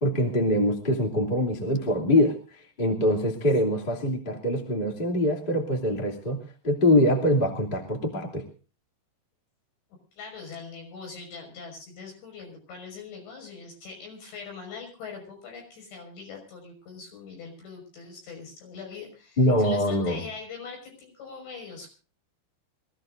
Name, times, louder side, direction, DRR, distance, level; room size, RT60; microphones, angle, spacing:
voice 1, 0.0-6.4 6.6-8.4 19.4-20.2, left 1 dB, 20° left, 0 dB, 1.5 m, -24 dB
voice 2, 10.1-21.9, left 5 dB, 60° left, 2 dB, 8.0 m, -42 dB
25.5 x 16.0 x 2.6 m, 0.36 s
omnidirectional pair, 5.8 m